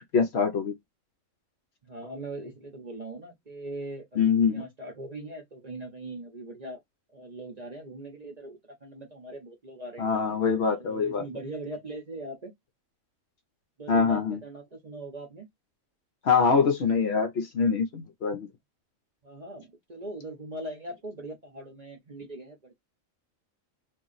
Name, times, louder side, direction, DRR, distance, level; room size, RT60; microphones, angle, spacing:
voice 1, 0.1-0.7 4.2-4.6 10.0-11.2 13.9-14.4 16.2-18.5, left 5 dB, 60° left, 0.8 m, -24 dB
voice 2, 1.8-6.8 7.1-10.1 10.8-12.5 13.8-15.5 19.2-22.7, right 2 dB, 40° right, 0.7 m, -40 dB
2.9 x 2.5 x 3.9 m
omnidirectional pair, 1.4 m